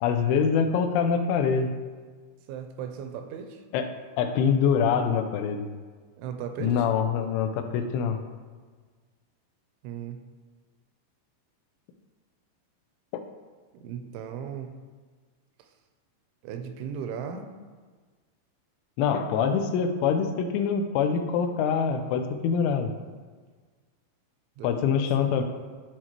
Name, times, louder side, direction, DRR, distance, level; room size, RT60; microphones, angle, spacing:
voice 1, 0.0-1.7 3.7-3.9 4.2-5.7 6.6-8.2 19.0-22.9 24.6-25.4, left 6 dB, 80° left, 6 dB, 2.6 m, -24 dB
voice 2, 2.5-3.6 6.2-6.9 9.8-10.2 13.7-14.7 15.6-15.7 16.4-17.5 24.6-25.3, right 7 dB, 85° right, 6 dB, 2.8 m, -37 dB
12.0 x 4.5 x 2.9 m, 1.5 s
omnidirectional pair, 5.5 m